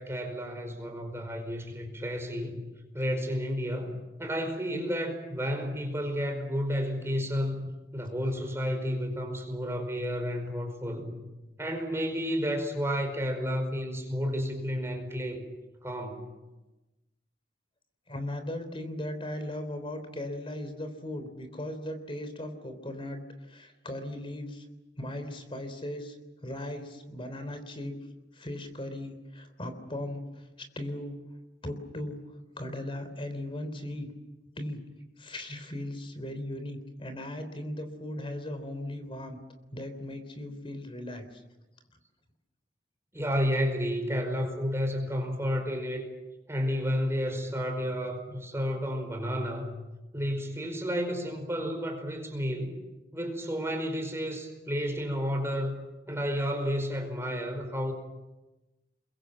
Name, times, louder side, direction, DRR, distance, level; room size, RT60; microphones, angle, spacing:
voice 1, 0.0-2.6 2.9-11.2 11.6-15.4 15.8-16.3 43.1-46.1 46.5-49.7 50.1-52.7 53.1-57.9, equal, 15° right, 4 dB, 5.0 m, -31 dB
voice 2, 18.1-24.6 25.0-26.2 26.4-28.0 28.3-31.2 31.6-32.2 32.5-34.1 34.6-34.8 35.2-39.4 39.7-41.4, left 1 dB, 30° left, 9 dB, 3.4 m, -38 dB
29.5 x 22.5 x 7.6 m, 1.0 s
head